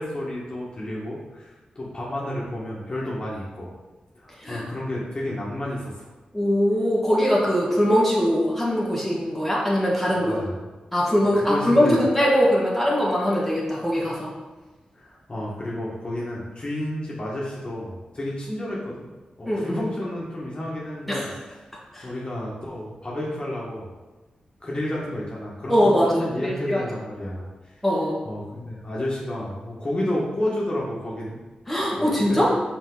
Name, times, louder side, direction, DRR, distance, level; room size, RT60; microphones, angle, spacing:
voice 1, 0.0-3.7 4.1-6.1 10.1-10.5 11.3-12.0 14.9-19.1 19.4-21.3 22.0-23.9 24.6-25.9 26.2-27.5 28.2-31.4 32.0-32.5, left 1 dB, 35° left, -5 dB, 1.6 m, -31 dB
voice 2, 6.3-10.4 10.9-14.3 19.5-19.8 21.1-21.3 21.9-22.1 25.7-26.8 27.8-28.2 31.7-32.5, equal, ahead, -6 dB, 1.8 m, -21 dB
5.6 x 4.3 x 4.0 m, 1.2 s
cardioid pair, 65°, 3 cm